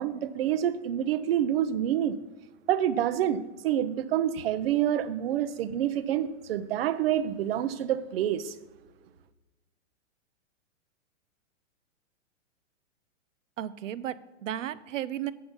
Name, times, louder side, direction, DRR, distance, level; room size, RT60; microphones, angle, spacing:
voice 1, 0.0-2.2 2.7-8.6, right 10 dB, 50° right, 0.7 m, -27 dB
voice 2, 13.6-15.3, right 11 dB, 90° right, 0.6 m, -34 dB
7.8 x 7.1 x 5.2 m
hypercardioid pair, 155°, 37 cm